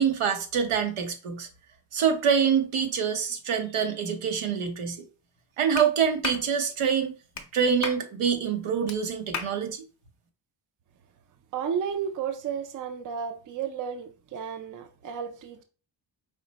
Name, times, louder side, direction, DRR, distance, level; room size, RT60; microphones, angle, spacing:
voice 1, 0.0-1.5 1.9-5.0 5.6-7.1 7.5-9.8, right 7 dB, 90° right, 1.0 m, -25 dB
Clapping, 5.8-5.9 6.2-6.5 7.3-7.5 7.8-8.0 8.9-9.0 9.3-9.5, left 5 dB, 35° left, 0.5 m, -33 dB
voice 2, 11.5-15.6, right 7 dB, 40° right, 0.5 m, -33 dB
4.9 x 2.1 x 3.9 m
wide cardioid pair, 155°, 48 cm